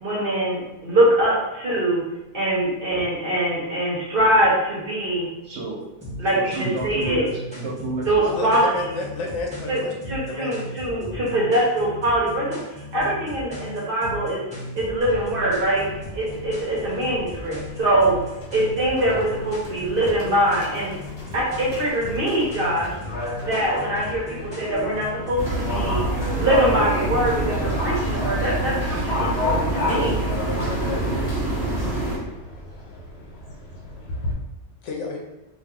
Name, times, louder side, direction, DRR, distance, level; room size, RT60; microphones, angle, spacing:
voice 1, 0.0-2.0 2.3-5.3 6.2-7.3 8.1-8.7 9.7-9.8 10.1-12.6 12.9-14.4 14.7-15.9 16.1-18.1 18.5-20.9 21.3-22.9 23.4-26.0 26.3-30.2, right 1 dB, 55° right, -5 dB, 1.0 m, -23 dB
voice 2, 5.4-5.8 6.3-8.2, right 2 dB, 75° right, -2 dB, 1.1 m, -30 dB
sound 1, 6.0-25.5, left 1 dB, 5° right, 1.4 m, -37 dB
voice 3, 8.2-9.9 10.3-10.5 31.7-31.9 34.8-35.2, left 2 dB, 85° left, 0 dB, 1.0 m, -30 dB
Livestock farm animals working animals, 15.0-34.3, left 2 dB, 60° left, 1.1 m, -33 dB
sound 2, 25.4-32.2, right 2 dB, 35° left, 1.4 m, -26 dB
2.9 x 2.6 x 3.6 m, 0.96 s
omnidirectional pair, 1.2 m